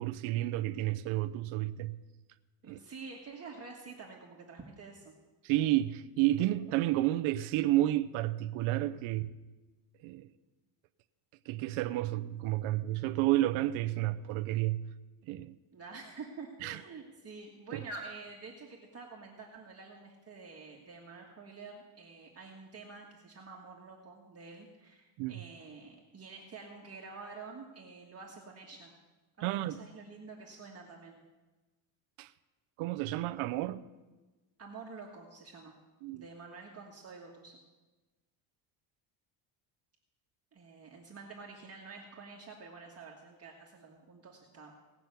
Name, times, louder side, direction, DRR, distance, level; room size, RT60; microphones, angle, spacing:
voice 1, 0.0-2.0 2.6-2.8 5.4-9.3 10.0-10.3 11.5-14.9 15.3-15.5 16.6-16.8 17.7-17.8 25.2-25.4 29.4-29.8 32.2-32.3 32.8-33.8 36.0-36.2, right 15 dB, 75° right, 0.7 m, -31 dB
voice 2, 2.6-5.1 15.7-29.0 29.4-31.2 34.6-35.7 36.1-37.6 40.5-44.7, right 4 dB, 30° right, 1.6 m, -48 dB
18.0 x 6.2 x 8.1 m
cardioid pair, 125°, 49 cm